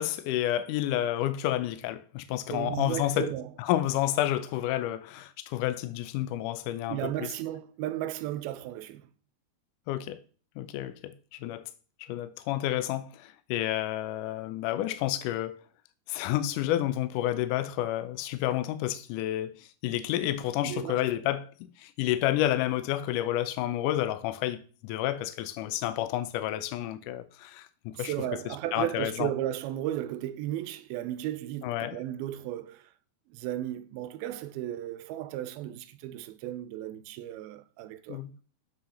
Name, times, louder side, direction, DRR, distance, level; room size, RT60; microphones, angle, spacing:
voice 1, 0.0-3.3 3.6-7.3 9.9-10.2 10.6-11.7 12.0-15.6 16.1-28.1 28.5-29.3 31.6-32.0 38.1-38.3, left 13 dB, 80° left, 1.9 m, -30 dB
voice 2, 2.5-3.5 6.9-9.1 20.6-21.0 28.0-32.9 33.3-38.2, right 13 dB, 85° right, 2.5 m, -35 dB
7.6 x 5.9 x 5.7 m
omnidirectional pair, 4.3 m